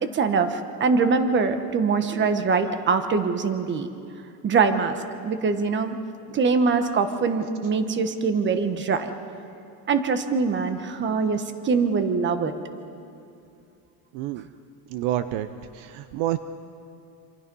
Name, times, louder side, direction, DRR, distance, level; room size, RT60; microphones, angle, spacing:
voice 1, 0.0-3.9 4.4-5.0 5.2-6.0 6.3-9.1 9.9-12.5, right 5 dB, 25° right, 8 dB, 1.3 m, -23 dB
voice 2, 14.1-14.4 14.9-15.5 15.7-16.4, right 13 dB, 55° right, 11 dB, 0.8 m, -28 dB
27.0 x 26.5 x 5.5 m, 2.6 s
cardioid pair, 160°, 48 cm